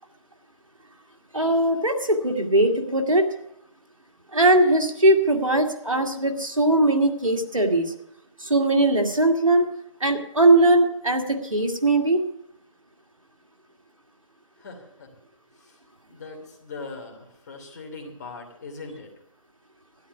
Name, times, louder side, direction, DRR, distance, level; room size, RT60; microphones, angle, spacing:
voice 1, 1.3-3.3 4.3-7.9 8.4-9.7 10.0-12.2, right 2 dB, 80° right, 4 dB, 2.2 m, -20 dB
voice 2, 14.6-15.1 15.6-15.8 16.1-19.1, left 3 dB, 35° left, 3 dB, 3.0 m, -40 dB
12.5 x 10.5 x 5.8 m, 0.78 s
figure-of-eight pair, 150°, 17 cm